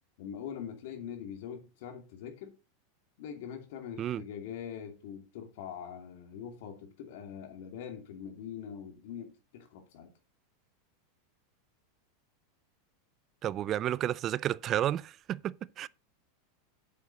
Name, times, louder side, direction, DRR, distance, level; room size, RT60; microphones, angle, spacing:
voice 1, 0.2-2.5 3.2-10.1, left 8 dB, 70° left, 2.6 m, -43 dB
voice 2, 13.4-15.9, right 12 dB, 40° right, 0.4 m, -31 dB
8.3 x 7.3 x 4.1 m
hypercardioid pair, 110°, 0 cm